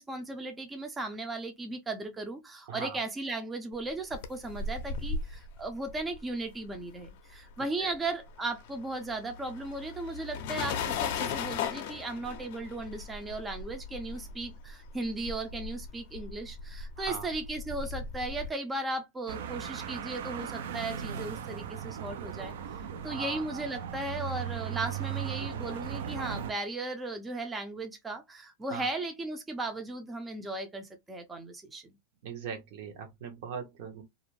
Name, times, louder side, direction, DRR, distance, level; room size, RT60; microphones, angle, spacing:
voice 1, 0.0-31.8, right 2 dB, 15° right, 0.4 m, -36 dB
sound 1, 3.9-7.5 7.8-18.5, left 5 dB, 60° left, 0.5 m, -38 dB
voice 2, 17.0-17.3 23.0-23.4 28.7-28.9 32.2-34.0, right 6 dB, 60° right, 0.8 m, -40 dB
sound 2, 19.3-26.5, right 8 dB, 75° right, 0.4 m, -37 dB
2.4 x 2.0 x 3.0 m
supercardioid pair, 135°, 0 cm